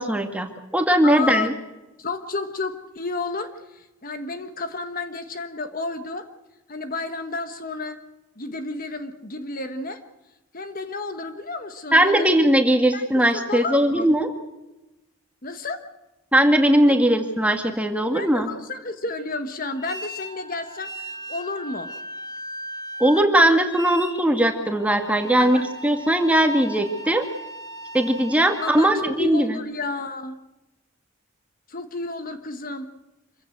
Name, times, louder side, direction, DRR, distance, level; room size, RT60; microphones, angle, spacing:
voice 1, 0.0-1.5 11.9-14.3 16.3-18.5 23.0-27.3 27.9-29.6, right 1 dB, 5° right, 5 dB, 2.1 m, -19 dB
voice 2, 1.0-1.5 2.0-6.3 6.7-8.0 8.4-10.0 10.5-12.3 12.9-13.1 13.3-14.1 15.4-15.8 16.8-17.0 18.1-21.9 25.4-25.7 28.6-30.4 31.7-32.9, left 3 dB, 40° left, 8 dB, 1.4 m, -31 dB
sound 1, 19.7-28.9, right 1 dB, 20° left, 1.5 m, -38 dB
26.5 x 15.5 x 7.9 m, 1.0 s
head